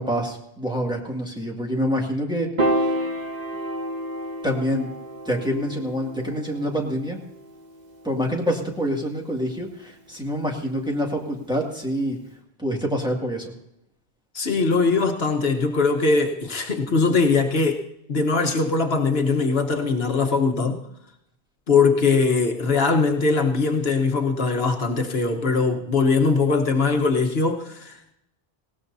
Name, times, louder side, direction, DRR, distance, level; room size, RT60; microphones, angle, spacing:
voice 1, 0.0-3.0 4.4-4.9 5.2-7.2 8.0-12.2 12.6-13.5, equal, 5° right, -2 dB, 2.2 m, -26 dB
Piano, 2.6-9.0, right 1 dB, 45° right, 1.4 m, -30 dB
voice 2, 14.3-20.8 21.7-28.1, left 4 dB, 70° left, 4 dB, 1.4 m, -21 dB
19.0 x 17.5 x 2.7 m, 0.81 s
omnidirectional pair, 1.1 m